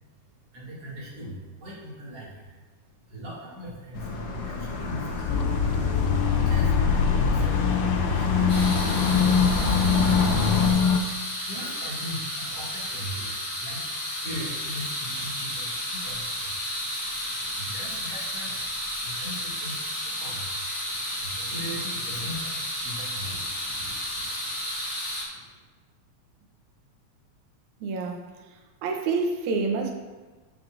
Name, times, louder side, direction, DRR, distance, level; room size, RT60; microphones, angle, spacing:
voice 1, 0.5-2.4 3.1-4.1 4.4-5.7 6.3-8.5 9.0-9.3 9.6-10.3 11.4-16.8 17.4-18.6 18.9-20.5 20.9-24.5, equal, 50° right, -7 dB, 3.2 m, -40 dB
sound 1, 3.9-10.7, left 2 dB, 60° left, 1.9 m, -29 dB
sound 2, 5.3-11.0, left 7 dB, 90° left, 2.2 m, -23 dB
sound 3, 8.5-25.2, equal, 25° left, 0.6 m, -32 dB
voice 2, 27.8-28.3 28.8-29.9, right 4 dB, 70° right, 2 dB, 2.1 m, -27 dB
13.0 x 6.1 x 2.6 m, 1.3 s
omnidirectional pair, 3.7 m